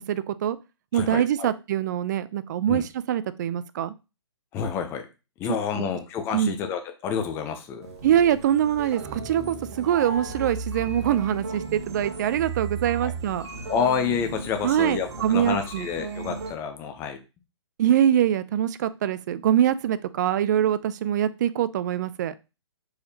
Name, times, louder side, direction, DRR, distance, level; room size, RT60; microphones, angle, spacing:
voice 1, 0.1-0.6 0.9-3.9 6.3-6.5 8.0-13.5 14.6-15.9 17.8-22.3, right 10 dB, 40° right, 15 dB, 0.3 m, -24 dB
voice 2, 0.9-1.5 2.7-2.8 4.5-5.1 5.4-7.9 13.0-13.1 13.7-17.2, left 7 dB, 15° left, 6 dB, 0.5 m, -29 dB
sound 1, 7.8-16.5, right 4 dB, 65° right, 1.3 m, -35 dB
4.7 x 3.3 x 2.7 m, 0.28 s
hypercardioid pair, 145°, 15 cm